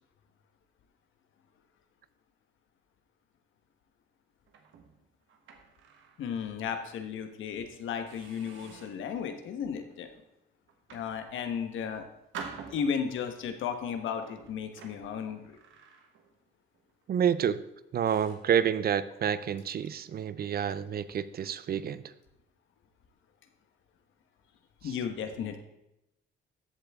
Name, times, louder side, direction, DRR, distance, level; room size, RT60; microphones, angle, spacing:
sound 1, 4.5-6.3 6.7-6.9 7.4-7.6 8.1-9.1 9.7-10.0 10.7-11.7 12.3-13.3 14.1-16.5 16.7-17.0 17.6-17.7 18.1-18.6, right 6 dB, 75° right, 1.5 m, -48 dB
voice 1, 6.2-10.1 10.9-12.1 12.7-15.6 24.8-25.6, left 7 dB, 80° left, 7 dB, 1.3 m, -34 dB
voice 2, 17.1-17.6 17.9-22.1 24.8-24.9, right 8 dB, 50° right, 15 dB, 0.5 m, -29 dB
14.0 x 8.0 x 3.6 m, 0.88 s
cardioid pair, 90°, 20 cm